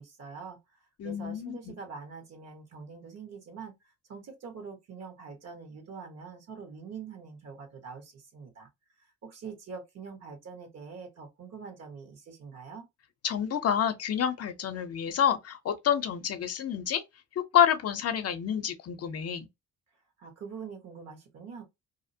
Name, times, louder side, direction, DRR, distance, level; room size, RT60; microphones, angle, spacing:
voice 1, 0.0-8.7 9.0-12.9 20.2-21.6, right 5 dB, 55° right, 1.2 m, -44 dB
voice 2, 1.0-1.7 13.2-17.0 17.3-19.5, left 9 dB, 55° left, 0.6 m, -28 dB
2.7 x 2.0 x 2.6 m
cardioid pair, 90°, 30 cm